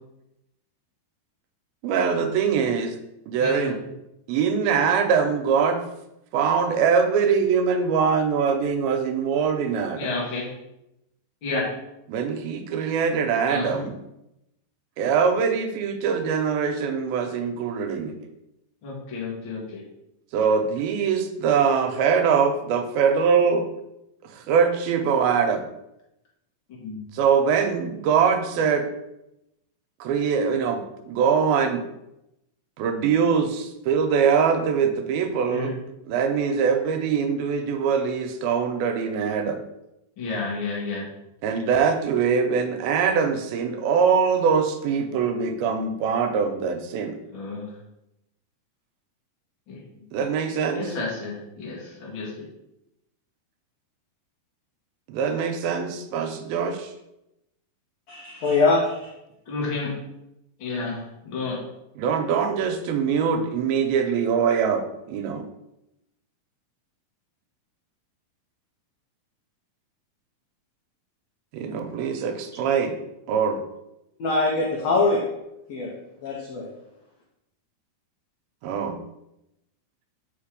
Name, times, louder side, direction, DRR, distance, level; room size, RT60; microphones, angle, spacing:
voice 1, 1.8-3.0 3.3-3.8 4.3-5.8 6.3-10.1 12.1-14.0 15.0-18.2 20.3-23.7 24.3-25.6 27.1-28.9 30.0-31.8 32.8-35.7 36.1-39.6 41.4-47.2 50.1-50.9 55.1-56.9 62.0-65.5 71.5-73.0 73.3-73.6 78.6-79.0, right 6 dB, 85° right, 6 dB, 2.5 m, -23 dB
voice 2, 3.4-3.7 10.0-10.5 11.4-11.7 13.5-13.8 18.8-19.8 26.8-27.0 35.5-35.7 40.2-41.0 47.3-47.7 49.7-49.8 50.7-52.4 59.5-59.9 60.6-61.6, left 3 dB, 40° left, -5 dB, 2.2 m, -31 dB
voice 3, 58.1-59.1 74.2-75.3 75.7-75.9 76.2-76.7, left 3 dB, 90° left, -2 dB, 1.4 m, -22 dB
5.7 x 5.2 x 5.0 m, 0.87 s
omnidirectional pair, 4.3 m